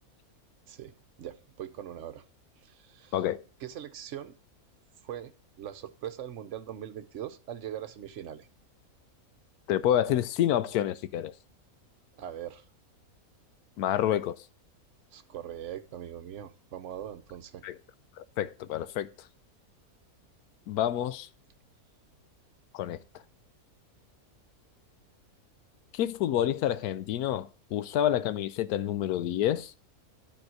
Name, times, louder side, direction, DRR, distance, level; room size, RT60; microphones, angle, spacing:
voice 1, 1.2-2.2 2.6-3.2 3.6-4.3 5.0-8.5 12.2-12.6 15.1-17.6, right 10 dB, 60° right, 1.0 m, -41 dB
voice 2, 3.1-3.4 9.7-11.3 13.8-14.4 17.6-17.8 18.2-19.1 20.7-21.3 22.7-23.0 25.9-29.7, left 11 dB, 90° left, 1.1 m, -28 dB
10.5 x 4.5 x 6.2 m
omnidirectional pair, 1.6 m